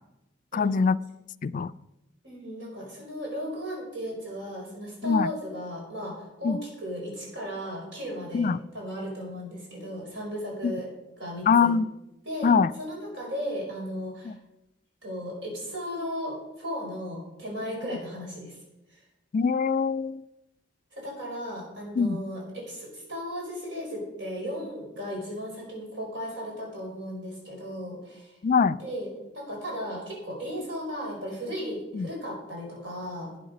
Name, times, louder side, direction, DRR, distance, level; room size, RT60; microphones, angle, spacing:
voice 1, 0.5-1.0 1.4-1.7 5.0-5.3 6.4-6.6 8.3-8.6 10.6-10.7 11.5-11.9 12.4-12.7 14.2-14.3 19.3-20.2 22.0-22.2 28.4-28.8 31.9-32.1, left 5 dB, 45° left, 15 dB, 0.3 m, -23 dB
voice 2, 2.2-10.9 11.2-11.7 12.2-12.5 12.8-14.4 15.0-18.6 20.9-28.3 28.8-29.1 29.3-33.3, equal, 75° right, -1 dB, 5.0 m, -36 dB
12.0 x 9.4 x 5.2 m, 0.92 s
head